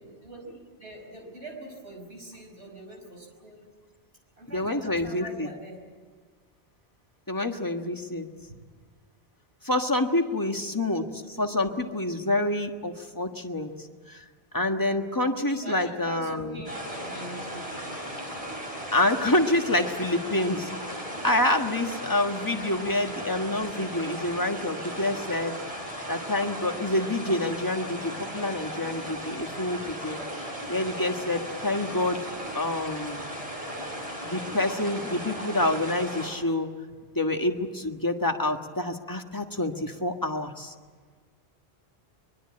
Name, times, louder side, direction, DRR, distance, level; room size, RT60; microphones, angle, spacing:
voice 1, 0.0-3.6 4.4-5.8 10.5-10.6 15.5-17.6, right 1 dB, 80° right, 3 dB, 5.6 m, -43 dB
voice 2, 4.5-5.5 7.3-8.3 9.6-14.2 14.5-16.6 18.9-25.5 26.1-32.3 32.5-33.2 34.2-36.7 37.1-40.7, left 1 dB, 20° left, 4 dB, 1.5 m, -27 dB
sound 1, 16.6-36.3, equal, 30° right, 5.2 m, -36 dB
23.5 x 22.5 x 8.7 m, 1.5 s
omnidirectional pair, 1.1 m